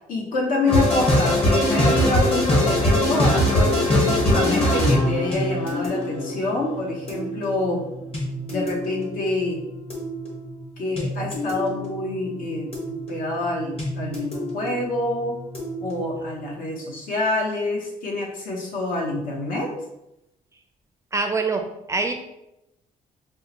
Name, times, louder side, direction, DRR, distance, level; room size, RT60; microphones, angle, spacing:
voice 1, 0.1-7.8 8.5-9.6 10.8-15.4 15.8-19.7, left 2 dB, 70° left, -1 dB, 1.0 m, -27 dB
sound 1, 0.7-16.4, left 1 dB, 40° left, 1.2 m, -24 dB
voice 2, 21.1-22.1, right 3 dB, 20° right, 5 dB, 0.4 m, -24 dB
5.4 x 2.2 x 2.8 m, 0.87 s
cardioid pair, 105°, 15 cm